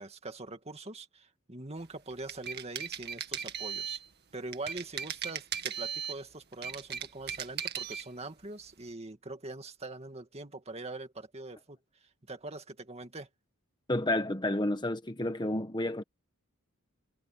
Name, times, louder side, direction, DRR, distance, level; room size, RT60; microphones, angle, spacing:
voice 1, 0.0-4.0 4.3-13.3, right 2 dB, 30° right, 2.1 m, -43 dB
sound 1, 2.1-4.1 4.5-6.2 6.5-8.1, right 8 dB, 50° right, 1.9 m, -37 dB
voice 2, 13.9-16.0, left 1 dB, 20° left, 1.2 m, -30 dB
head